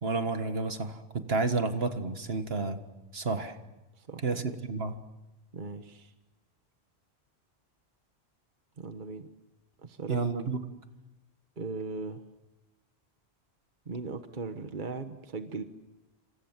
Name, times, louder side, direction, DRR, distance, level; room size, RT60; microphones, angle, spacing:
voice 1, 0.0-2.8 3.1-3.6 4.2-5.0 10.1-10.6, right 3 dB, 65° right, 8 dB, 1.9 m, -30 dB
voice 2, 4.0-4.6 5.5-6.1 8.8-9.3 9.8-10.2 11.6-12.2 13.9-15.6, right 4 dB, 45° right, 8 dB, 1.4 m, -38 dB
27.5 x 27.0 x 7.4 m, 1.1 s
omnidirectional pair, 1.1 m